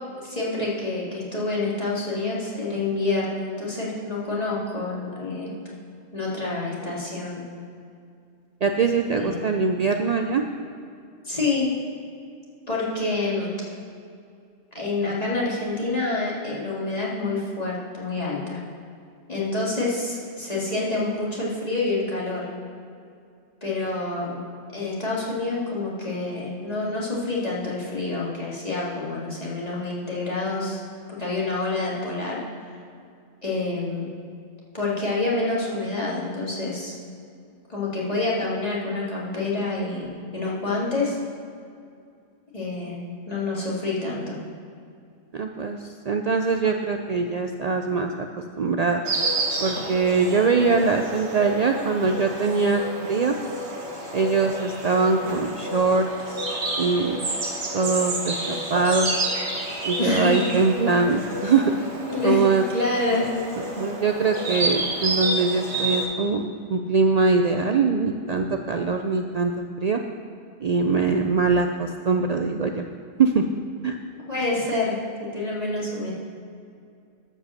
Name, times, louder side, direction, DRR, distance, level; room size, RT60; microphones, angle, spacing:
voice 1, 0.1-5.5 6.1-7.4 9.1-9.4 11.2-11.7 12.7-13.5 14.7-18.6 19.3-22.5 23.6-24.4 24.7-30.8 31.1-32.4 33.4-34.1 34.7-36.9 37.7-41.2 42.5-43.0 43.3-44.4 60.0-60.4 62.1-62.4 62.7-63.3 74.3-75.0 75.3-76.1, left 3 dB, 30° left, -6 dB, 2.4 m, -27 dB
voice 2, 8.6-10.4 45.3-48.3 48.6-49.0 49.6-53.3 54.1-56.5 56.8-57.2 57.7-59.1 59.8-61.7 62.2-62.6 63.6-66.4 66.7-70.0 70.6-72.9 73.2-73.4 73.8-74.0, right 4 dB, 75° right, 4 dB, 0.3 m, -22 dB
Insect, 49.0-66.0, right 1 dB, 60° right, 1.7 m, -30 dB
13.0 x 5.5 x 6.4 m, 2.4 s
omnidirectional pair, 1.3 m